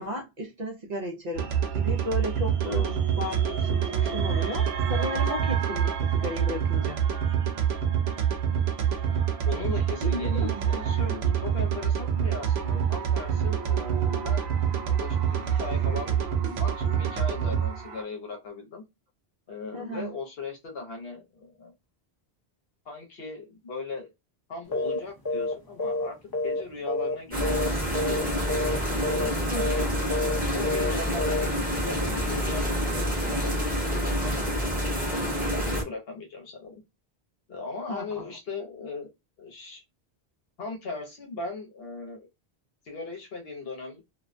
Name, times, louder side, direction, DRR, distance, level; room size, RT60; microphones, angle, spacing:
voice 1, 0.0-1.5 1.7-7.0 10.0-10.6 19.7-20.1 29.5-29.7 37.9-38.3, left 1 dB, 50° right, 0.6 m, -34 dB
sound 1, 1.3-18.0, right 8 dB, 75° right, 0.8 m, -26 dB
voice 2, 9.5-14.6 14.8-18.8 19.5-21.7 22.9-24.1 24.5-26.1 26.4-28.5 29.2-29.5 30.5-34.6 34.9-36.7 37.5-39.1 39.4-39.8 40.6-42.3 42.8-44.0, left 3 dB, 70° left, 1.0 m, -38 dB
sound 2, 24.7-25.0 25.2-25.5 25.8-27.2 27.4-27.7 27.9-28.2 28.5-28.8 29.0-29.3 29.6-29.8 30.1-30.4 30.6-30.9 31.2-31.4, left 2 dB, 30° left, 0.4 m, -28 dB
sound 3, 27.3-35.8, equal, 10° right, 1.0 m, -28 dB
2.4 x 2.1 x 2.4 m
omnidirectional pair, 1.1 m